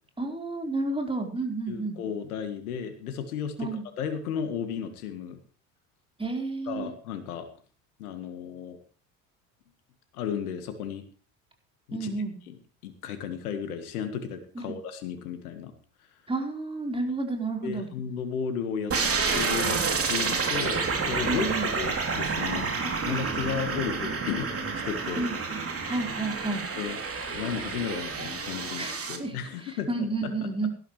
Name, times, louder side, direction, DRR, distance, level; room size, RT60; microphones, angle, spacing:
voice 1, 0.2-2.0 3.6-3.8 6.2-6.9 11.9-12.4 14.5-14.8 16.3-17.9 21.3-21.7 22.8-23.3 25.2-26.6 28.8-29.4 29.9-30.7, right 3 dB, 10° right, 2 dB, 4.3 m, -31 dB
voice 2, 1.7-3.7 4.0-5.4 6.7-7.5 8.0-8.8 10.1-11.0 11.9-12.1 12.5-15.7 17.6-18.9 19.3-22.7 23.0-25.3 26.8-27.0 27.3-30.5, left 7 dB, 85° left, 8 dB, 1.7 m, -34 dB
sound 1, 18.9-29.2, right 4 dB, 30° right, 3.1 m, -29 dB
17.5 x 12.0 x 3.2 m, 0.39 s
hypercardioid pair, 70°, 43 cm